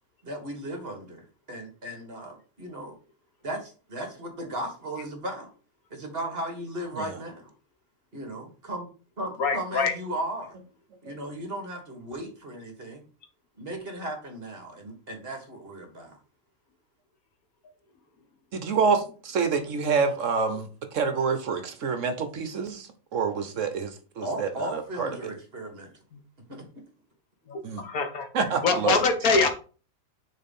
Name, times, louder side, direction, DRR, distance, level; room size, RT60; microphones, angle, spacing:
voice 1, 0.2-2.9 3.4-5.5 5.9-7.5 8.1-8.9 9.2-10.6 11.0-13.0 13.6-16.2 24.2-25.9 26.5-26.7, right 1 dB, 45° right, 3 dB, 2.0 m, -36 dB
voice 2, 9.4-9.9 27.5-28.2 28.6-29.5, left 4 dB, 85° left, 6 dB, 1.7 m, -24 dB
voice 3, 18.5-25.1 27.6-27.9 28.3-29.0, right 5 dB, 65° right, 8 dB, 1.2 m, -27 dB
6.3 x 3.8 x 5.5 m, 0.37 s
omnidirectional pair, 1.5 m